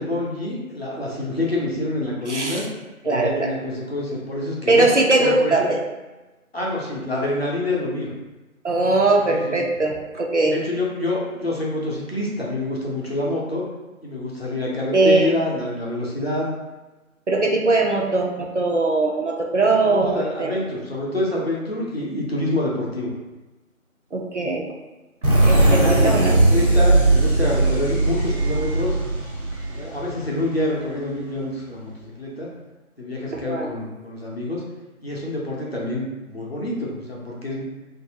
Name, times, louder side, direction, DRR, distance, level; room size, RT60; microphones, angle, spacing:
voice 1, 0.0-2.6 3.0-4.9 5.2-5.7 6.5-8.1 9.2-9.5 10.5-13.6 14.0-16.5 19.9-23.1 25.5-29.0 29.6-32.5 33.0-34.6 35.0-37.6, left 1 dB, 45° left, -4 dB, 0.6 m, -27 dB
voice 2, 2.3-2.6 3.1-3.5 4.7-5.8 8.6-10.6 14.9-15.3 17.3-20.6 24.1-24.7 25.4-26.3 33.3-33.7, right 2 dB, 55° right, 0 dB, 0.5 m, -20 dB
sound 1, 25.2-30.7, right 2 dB, 80° right, 1.3 m, -18 dB
2.7 x 2.6 x 2.7 m, 1.1 s
figure-of-eight pair, 165°, 43 cm